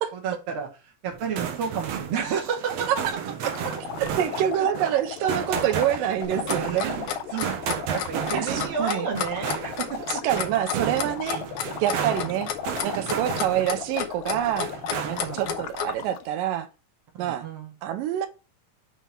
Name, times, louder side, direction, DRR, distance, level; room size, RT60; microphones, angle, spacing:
voice 1, 0.1-0.7 1.0-2.9 4.0-4.4 6.0-6.1 6.6-10.0 11.9-12.5 13.1-13.6 14.8-15.5 17.1-17.7, right 6 dB, 50° right, 2.1 m, -32 dB
sound 1, 1.1-13.9 14.3-15.5, right 8 dB, 70° right, 1.6 m, -33 dB
sound 2, 3.4-16.3, left 8 dB, 90° left, 2.2 m, -36 dB
voice 2, 4.0-7.0 8.3-9.1 10.2-11.4 11.8-12.5 12.8-14.7 15.0-16.7 17.2-17.5 17.8-18.3, right 11 dB, 85° right, 2.3 m, -26 dB
Clock, 6.2-15.9, left 8 dB, 70° left, 2.1 m, -31 dB
6.1 x 3.7 x 5.3 m
omnidirectional pair, 3.8 m